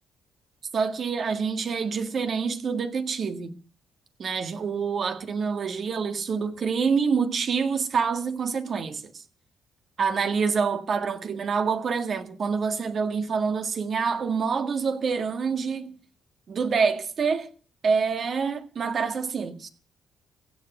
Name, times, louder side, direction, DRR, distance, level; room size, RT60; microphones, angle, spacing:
voice 1, 0.7-3.5 4.2-9.2 10.0-16.0 16.5-17.5 17.8-19.7, right 5 dB, 50° right, 1.7 m, -26 dB
16.0 x 7.1 x 9.0 m
cardioid pair, 90°, 0 cm